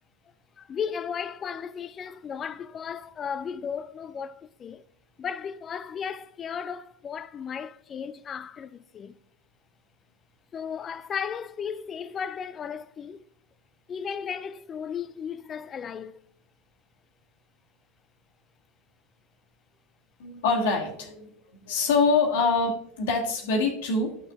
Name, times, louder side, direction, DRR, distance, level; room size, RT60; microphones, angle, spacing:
voice 1, 0.6-4.8 5.2-9.2 10.5-13.2 13.9-16.2, left 7 dB, 30° left, 0.4 m, -35 dB
voice 2, 20.2-21.3 21.6-24.2, left 4 dB, 65° left, 1.5 m, -25 dB
13.0 x 6.3 x 2.4 m
figure-of-eight pair, 85°, 0 cm